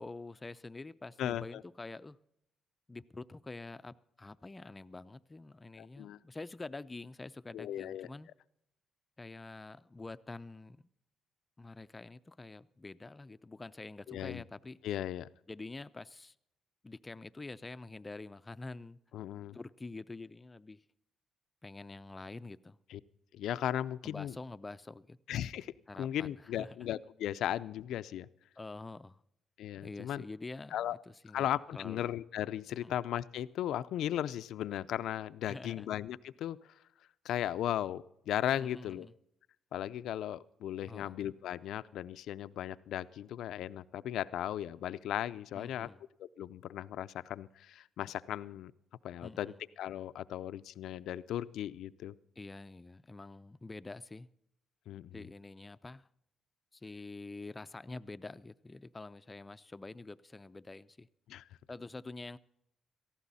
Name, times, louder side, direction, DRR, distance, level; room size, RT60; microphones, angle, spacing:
voice 1, 0.0-2.2 2.9-8.3 9.2-10.9 11.6-14.8 15.5-16.3 16.8-19.0 19.5-20.8 21.6-22.8 24.0-25.2 25.9-26.7 28.6-29.2 29.8-32.0 32.8-32.9 35.5-35.9 38.6-39.1 40.9-41.2 45.5-46.0 49.2-49.6 52.4-54.3 55.1-56.1 56.7-61.1 61.7-62.4, left 3 dB, 20° left, 0.5 m, -47 dB
voice 2, 1.2-1.6 5.8-6.2 7.5-8.1 14.1-14.4 14.8-15.3 19.1-19.6 22.9-23.0 23.3-24.4 25.3-28.3 29.6-30.2 30.7-31.0 31.3-36.6 37.2-39.1 39.7-45.9 46.2-48.7 49.0-52.1 54.9-55.3 61.3-61.4, left 11 dB, 80° left, 0.5 m, -37 dB
18.0 x 14.5 x 4.2 m
cardioid pair, 90°, 0 cm